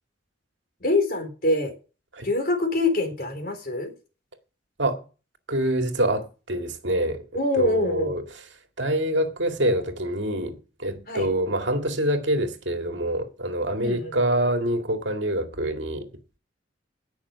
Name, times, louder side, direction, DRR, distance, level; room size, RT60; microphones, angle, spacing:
voice 1, 0.8-1.7 2.2-3.9 7.3-8.2 11.1-11.3 13.8-14.2, left 2 dB, 50° left, 3.9 m, -25 dB
voice 2, 5.5-7.2 7.5-8.2 8.8-16.1, right 1 dB, 70° right, 2.1 m, -26 dB
18.0 x 6.4 x 5.7 m
head